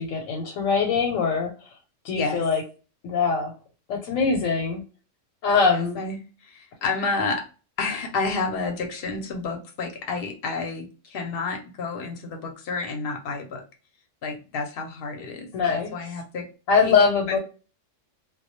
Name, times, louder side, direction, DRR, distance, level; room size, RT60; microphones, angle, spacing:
voice 1, 0.0-1.7 2.0-2.6 3.0-3.5 3.9-4.8 5.4-6.0 15.5-15.9 16.7-17.4, left 5 dB, 90° left, 2 dB, 1.0 m, -22 dB
voice 2, 2.1-2.4 5.6-7.5 7.8-13.6 14.2-16.5 16.8-16.9 17.3-17.4, left 4 dB, 55° left, 4 dB, 0.8 m, -30 dB
2.2 x 2.1 x 2.7 m, 0.35 s
omnidirectional pair, 1.3 m